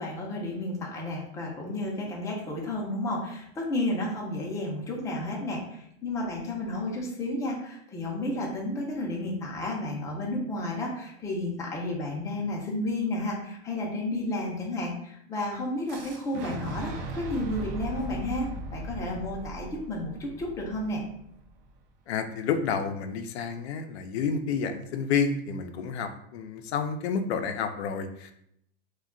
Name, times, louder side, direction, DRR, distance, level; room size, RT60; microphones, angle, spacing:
voice 1, 0.0-18.5 18.7-21.0, left 1 dB, 10° left, -2 dB, 0.4 m, -32 dB
Fire / Explosion, 15.9-21.8, right 2 dB, 50° right, 0.4 m, -38 dB
voice 2, 22.1-28.3, left 6 dB, 85° left, 7 dB, 0.5 m, -30 dB
2.2 x 2.2 x 3.6 m, 0.73 s
supercardioid pair, 135°, 31 cm